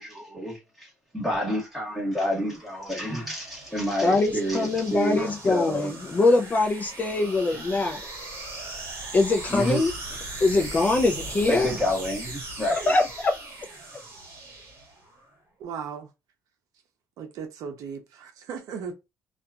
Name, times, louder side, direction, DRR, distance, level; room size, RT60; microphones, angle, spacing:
voice 1, 0.0-5.9 9.5-9.9 11.5-12.9, equal, 5° right, 1.5 m, -29 dB
sound 1, 1.8-15.2, right 2 dB, 45° right, 1.4 m, -39 dB
voice 2, 4.0-8.0 9.1-9.9 10.4-11.7 12.6-13.3, left 3 dB, 25° left, 0.4 m, -23 dB
voice 3, 15.6-16.1 17.2-18.9, right 6 dB, 70° right, 0.7 m, -36 dB
2.6 x 2.4 x 2.3 m
cardioid pair, 130°, 6 cm